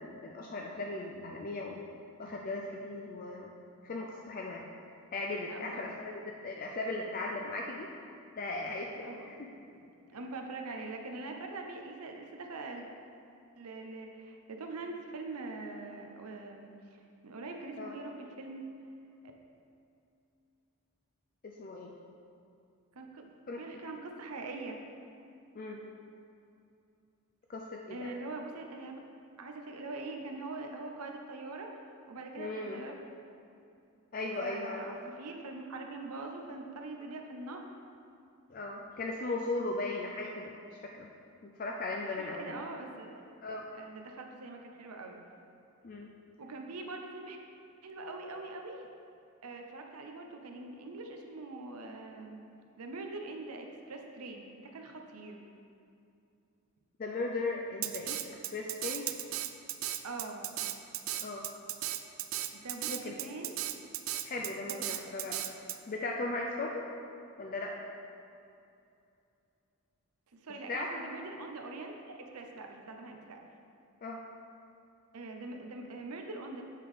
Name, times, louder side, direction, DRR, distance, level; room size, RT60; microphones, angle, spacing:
voice 1, 0.0-1.8 2.2-3.5 3.8-4.7 5.1-7.9 8.4-9.4 17.8-18.0 21.4-21.9 23.5-23.6 25.5-25.8 27.5-28.1 32.4-32.8 34.1-35.0 38.5-40.5 40.8-41.1 41.6-42.6 43.4-43.7 45.8-46.1 57.0-59.0 61.2-61.4 62.9-63.1 64.2-65.4 65.9-66.9 67.4-67.8 70.7-70.9 74.0-74.2, left 2 dB, 40° left, 0 dB, 0.4 m, -37 dB
voice 2, 5.5-6.2 9.0-9.5 10.1-12.8 13.6-18.6 22.9-24.8 27.9-29.0 29.4-31.7 32.1-32.9 34.3-37.7 42.1-43.2 43.7-45.2 46.4-47.4 47.8-48.9 49.4-52.4 52.8-55.4 60.0-60.5 62.5-63.6 64.6-64.8 70.3-73.4 75.1-76.6, right 3 dB, 85° right, 3 dB, 0.7 m, -43 dB
Drum kit, 57.8-65.8, right 13 dB, 60° right, 0.3 m, -36 dB
8.3 x 3.7 x 4.9 m, 2.6 s
head